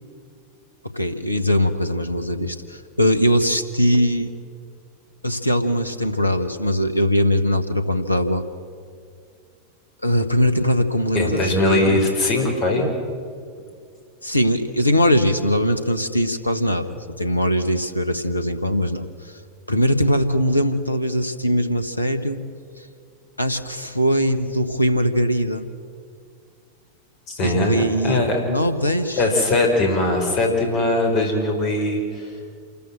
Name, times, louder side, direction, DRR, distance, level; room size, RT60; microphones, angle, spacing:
voice 1, 0.9-4.3 5.2-8.4 10.0-12.0 14.2-19.3 19.7-22.4 22.8-22.9 23.4-25.7 27.4-29.3, equal, 85° left, 10 dB, 1.2 m, -21 dB
voice 2, 11.1-12.9 27.3-28.4 29.2-32.3, left 2 dB, 40° left, 2 dB, 4.9 m, -20 dB
27.5 x 14.0 x 7.8 m, 2.2 s
figure-of-eight pair, 90°, 0 cm